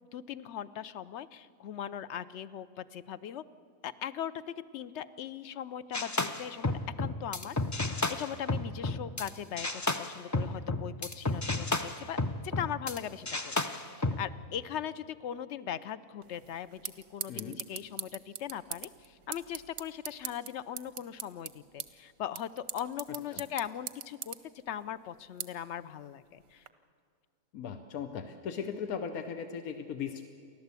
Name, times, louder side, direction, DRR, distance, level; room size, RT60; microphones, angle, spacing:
voice 1, 0.1-3.4 3.8-6.7 7.0-7.6 8.1-12.2 12.4-24.4 24.7-26.6, left 9 dB, 60° left, 15 dB, 0.9 m, -39 dB
sound 1, 5.9-9.3 9.6-13.0 13.3-14.2, left 2 dB, 25° left, 0.3 m, -32 dB
sound 2, 16.2-26.7, right 9 dB, 90° right, 1.4 m, -44 dB
voice 2, 27.5-30.2, left 7 dB, 90° left, 8 dB, 1.4 m, -38 dB
29.5 x 12.0 x 8.2 m, 2.2 s
omnidirectional pair, 1.5 m